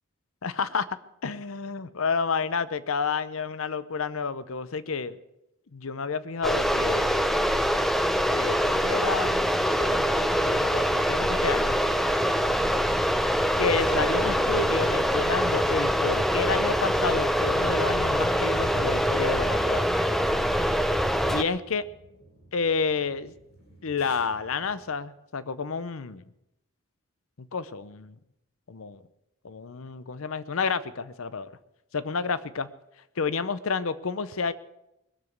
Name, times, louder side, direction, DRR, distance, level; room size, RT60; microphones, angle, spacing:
voice 1, 0.4-1.0 1.2-5.2 5.7-7.4 8.3-11.8 13.6-19.9 21.2-21.8 22.5-23.3 23.8-26.2 27.4-28.1 28.7-29.0 29.4-31.5 31.9-32.7 33.2-34.5, left 5 dB, 75° left, 16 dB, 0.7 m, -30 dB
sound 1, 6.4-21.4, equal, ahead, 0.5 m, -24 dB
sound 2, 13.7-24.8, equal, 50° left, 3.4 m, -45 dB
21.5 x 7.2 x 8.0 m, 0.88 s
head